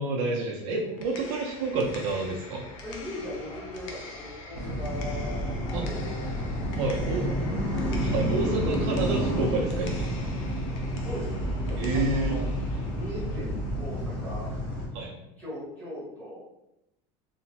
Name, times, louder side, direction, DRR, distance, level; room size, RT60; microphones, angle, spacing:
voice 1, 0.0-2.6 5.7-5.8 6.7-7.3 8.0-10.1 11.8-12.3 14.9-15.2, right 3 dB, 60° right, -1 dB, 0.5 m, -29 dB
sound 1, 0.8-14.8, left 2 dB, 85° left, 0.6 m, -44 dB
voice 2, 2.8-5.6 5.8-6.3 6.6-7.9 11.0-12.4 12.7-14.5 15.4-16.4, left 1 dB, 10° left, -9 dB, 1.1 m, -39 dB
sound 2, 4.5-14.9, equal, 70° left, 1.3 m, -30 dB
2.9 x 2.1 x 2.8 m, 0.87 s
cardioid pair, 175°, 16 cm